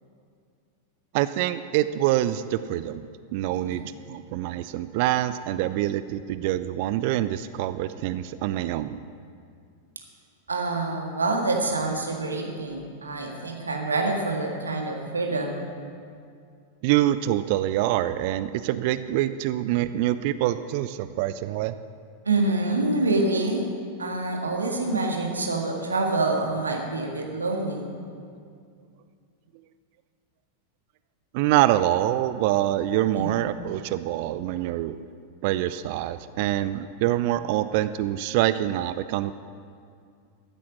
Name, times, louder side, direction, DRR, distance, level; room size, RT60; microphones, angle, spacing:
voice 1, 1.1-3.1 3.3-3.8 4.1-9.0 16.8-21.7 31.3-35.0 35.4-39.3, right 14 dB, 50° right, 13 dB, 0.4 m, -25 dB
voice 2, 3.5-3.9 10.5-15.7 22.3-23.7 24.0-27.9 33.2-33.3, right 2 dB, 75° right, 2 dB, 1.7 m, -26 dB
14.5 x 8.4 x 6.1 m, 2.3 s
figure-of-eight pair, 90°, 0 cm